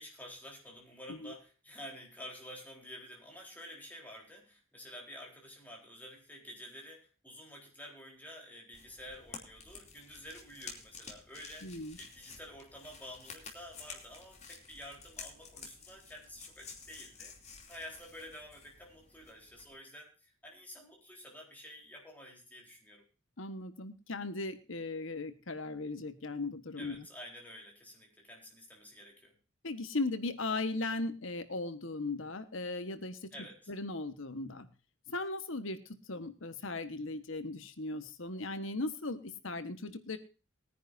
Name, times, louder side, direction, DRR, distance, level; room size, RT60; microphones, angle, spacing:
voice 1, 0.0-23.0 26.8-29.3 33.3-33.7, equal, 10° left, 0 dB, 3.9 m, -50 dB
sound 1, 8.7-19.7, left 5 dB, 30° left, 2.8 m, -51 dB
voice 2, 11.6-12.0 23.4-27.0 29.6-33.3 33.7-34.7 35.1-35.8 36.1-40.2, left 2 dB, 65° left, 10 dB, 1.3 m, -37 dB
21.0 x 10.0 x 2.6 m, 0.34 s
head